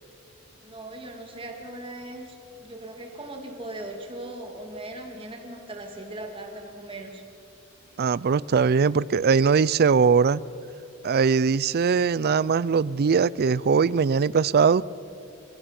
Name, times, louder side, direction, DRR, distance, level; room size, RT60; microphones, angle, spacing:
voice 1, 0.6-7.2, right 1 dB, 25° right, 2.4 m, -39 dB
voice 2, 8.0-10.4 11.0-14.8, right 5 dB, 45° right, 0.4 m, -21 dB
28.5 x 17.0 x 5.9 m
head